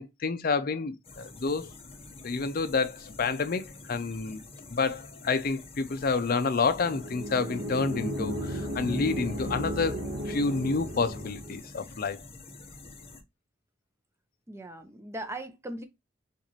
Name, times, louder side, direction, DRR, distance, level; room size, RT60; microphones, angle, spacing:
voice 1, 0.0-1.7 2.2-4.4 4.7-12.2, left 4 dB, 50° left, 0.5 m, -29 dB
sound 1, 1.0-13.2, left 3 dB, 30° left, 0.9 m, -48 dB
sound 2, 6.7-11.6, equal, 75° right, 1.3 m, -35 dB
voice 2, 14.5-15.9, right 1 dB, 15° right, 0.6 m, -39 dB
6.9 x 2.5 x 3.0 m
head